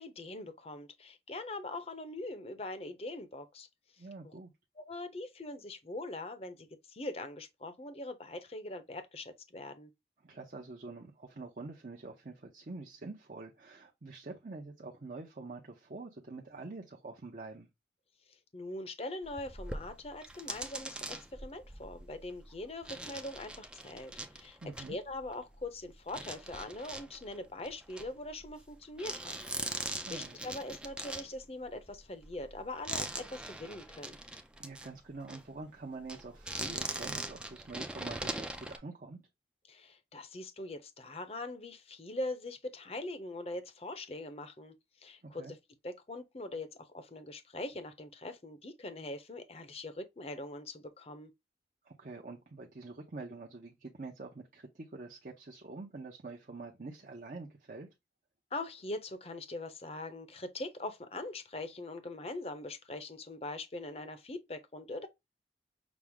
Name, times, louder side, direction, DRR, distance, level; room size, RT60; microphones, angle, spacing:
voice 1, 0.0-3.7 4.0-4.3 4.8-9.9 18.3-24.6 24.9-29.4 29.8-34.2 39.7-45.6 45.8-51.3 58.5-65.1, left 2 dB, 35° left, 0.6 m, -42 dB
voice 2, 4.0-4.5 10.2-17.7 24.6-25.0 29.9-30.4 34.6-39.2 45.2-45.5 51.8-57.9, right 3 dB, 45° right, 0.7 m, -46 dB
sound 1, 19.2-25.7 26.1-28.7 29.0-34.9 35.2-35.4 36.0-38.8, right 1 dB, 5° right, 0.4 m, -41 dB
6.0 x 2.0 x 3.5 m
head